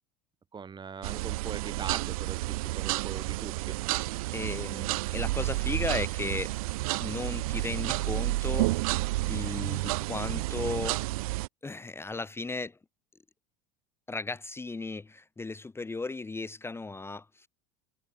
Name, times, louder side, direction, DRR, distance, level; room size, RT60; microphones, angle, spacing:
voice 1, 0.5-3.8, right 6 dB, 25° right, 1.6 m, -41 dB
sound 1, 1.0-11.5, right 20 dB, 80° right, 0.4 m, -30 dB
voice 2, 4.3-6.5 7.0-11.0 11.6-12.8 14.1-17.5, left 3 dB, 15° left, 1.1 m, -36 dB
hypercardioid pair, 95°, 18 cm